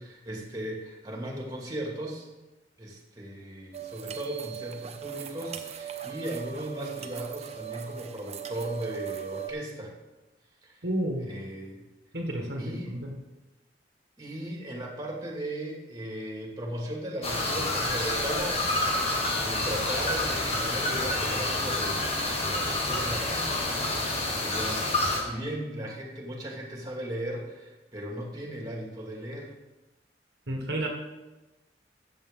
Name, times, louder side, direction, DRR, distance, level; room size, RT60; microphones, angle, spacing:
voice 1, 0.0-2.3 2.8-9.9 10.6-10.8 11.2-11.8 12.6-12.9 14.2-29.5, right 1 dB, 20° right, -1 dB, 2.3 m, -37 dB
sound 1, 3.7-9.5, right 10 dB, 40° right, 0.8 m, -39 dB
voice 2, 10.8-11.3 12.1-13.1 24.0-24.1 30.5-30.9, right 1 dB, 70° right, 1 dB, 1.5 m, -31 dB
sound 2, 17.2-25.2, left 2 dB, 35° left, 1.8 m, -28 dB
13.5 x 7.8 x 3.8 m, 1.1 s
head